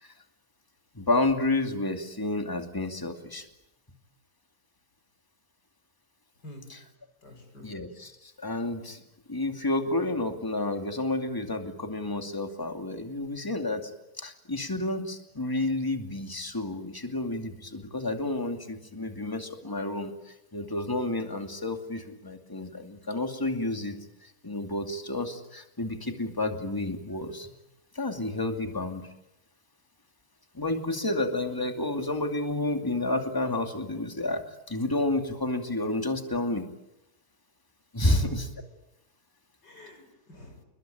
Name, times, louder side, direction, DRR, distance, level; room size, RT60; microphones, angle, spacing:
voice 1, 0.9-3.5 6.7-6.8 7.6-9.0 9.3-13.9 14.2-27.5 27.9-29.0 30.5-36.7 37.9-38.5, left 2 dB, 10° left, 5 dB, 2.5 m, -30 dB
voice 2, 7.2-7.7 38.0-38.3 39.6-40.7, left 1 dB, 90° left, 5 dB, 7.0 m, -45 dB
28.5 x 22.0 x 9.1 m, 0.87 s
omnidirectional pair, 1.8 m